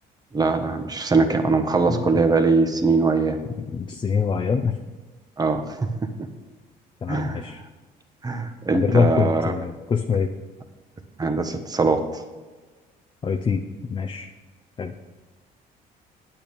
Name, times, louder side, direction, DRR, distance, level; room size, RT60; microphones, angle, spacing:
voice 1, 0.3-3.4 5.4-5.9 7.1-7.4 8.2-9.5 11.2-12.0, right 3 dB, 20° right, 7 dB, 1.2 m, -21 dB
voice 2, 3.7-4.7 7.0-7.6 8.7-10.3 13.2-13.6 13.9-14.3 14.8-14.9, left 6 dB, 30° left, 5 dB, 0.7 m, -24 dB
8.8 x 8.6 x 5.3 m, 1.3 s
cardioid pair, 110°, 17 cm